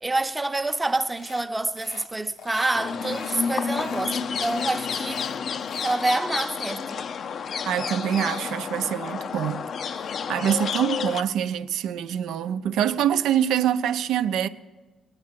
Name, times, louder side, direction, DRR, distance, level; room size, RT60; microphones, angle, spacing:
voice 1, 0.0-5.2 5.8-7.0, right 2 dB, 15° right, 0.7 m, -27 dB
sound 1, 1.1-1.5 1.8-2.1 2.4-3.4 3.7-4.1 4.4-6.0, left 7 dB, 80° left, 0.8 m, -43 dB
sound 2, 2.7-11.2, left 6 dB, 55° left, 0.5 m, -30 dB
voice 2, 7.7-9.6 9.9-14.5, right 10 dB, 85° right, 0.5 m, -25 dB
19.5 x 9.7 x 7.4 m
cardioid pair, 90°, 0 cm